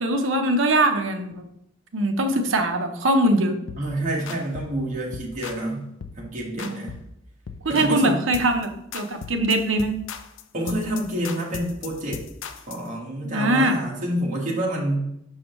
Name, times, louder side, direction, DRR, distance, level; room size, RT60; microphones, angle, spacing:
voice 1, 0.0-1.5 1.9-3.6 6.6-6.8 7.6-10.0 13.2-13.8, right 1 dB, 80° right, 6 dB, 0.8 m, -22 dB
sound 1, 3.7-3.9 4.3-4.8 5.1-5.7 6.0-6.2 6.6-7.1 7.5-8.0 8.3-8.7 8.9-12.9, left 6 dB, 75° left, 0.4 m, -38 dB
voice 2, 3.8-5.8 6.2-6.9 7.7-8.2 10.5-12.2 12.7-15.1, right 1 dB, 40° right, -3 dB, 1.4 m, -28 dB
6.3 x 4.8 x 3.1 m, 0.78 s
head